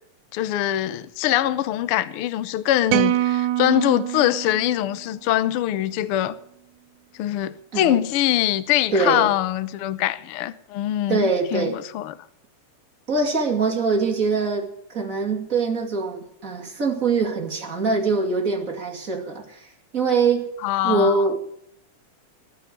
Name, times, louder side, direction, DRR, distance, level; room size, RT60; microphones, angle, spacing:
voice 1, 0.3-6.4 7.1-12.1 20.6-21.2, left 13 dB, 70° left, 1.4 m, -23 dB
sound 1, 2.9-5.3, right 14 dB, 75° right, 2.1 m, -25 dB
voice 2, 8.9-9.3 11.1-11.8 13.1-19.7 19.9-20.5 20.8-21.4, right 4 dB, 30° right, 2.6 m, -23 dB
19.5 x 7.0 x 9.7 m
omnidirectional pair, 3.4 m